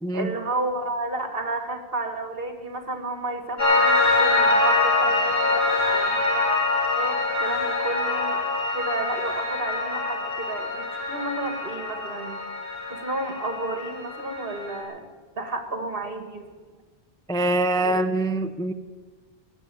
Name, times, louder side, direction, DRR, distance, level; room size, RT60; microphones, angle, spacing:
voice 1, 0.1-6.2 7.0-8.4 8.7-12.4 12.9-15.0 15.4-16.5 17.8-18.0, right 2 dB, 65° right, 5 dB, 2.0 m, -31 dB
Piano, 3.6-14.8, left 3 dB, 80° left, 4.1 m, -24 dB
voice 2, 17.3-18.7, right 2 dB, 5° left, 7 dB, 0.4 m, -24 dB
20.5 x 7.2 x 9.1 m, 1.4 s
omnidirectional pair, 1.0 m